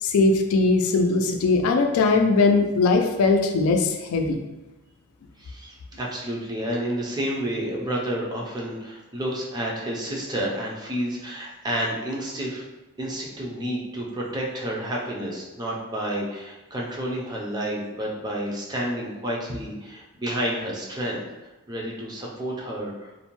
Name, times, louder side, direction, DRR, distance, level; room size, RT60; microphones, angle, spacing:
voice 1, 0.0-4.4, left 3 dB, 85° left, 4 dB, 0.3 m, -20 dB
voice 2, 5.4-12.7 13.0-21.2 21.7-23.2, right 1 dB, 20° right, -3 dB, 0.4 m, -30 dB
2.6 x 2.1 x 2.9 m, 1.0 s
head